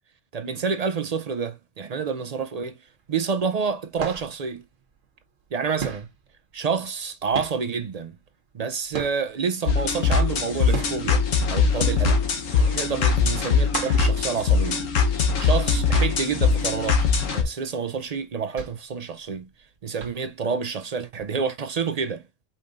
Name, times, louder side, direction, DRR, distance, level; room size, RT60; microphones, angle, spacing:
voice 1, 0.3-2.8 3.1-4.6 5.5-6.1 6.5-8.1 8.5-11.2 11.5-12.2 12.7-14.9 15.4-17.1 17.3-19.5 19.8-22.2, right 5 dB, 50° right, 0.4 m, -28 dB
sound 1, 2.9-3.3 3.6-5.5 5.8-9.5 10.0-15.3 15.6-15.7 16.1-16.3 16.8-19.6 20.0-20.5 21.2-21.3, right 7 dB, 85° right, 1.4 m, -36 dB
sound 2, 9.7-17.4, left 5 dB, 85° left, 1.4 m, -21 dB
5.2 x 4.1 x 2.5 m
omnidirectional pair, 1.3 m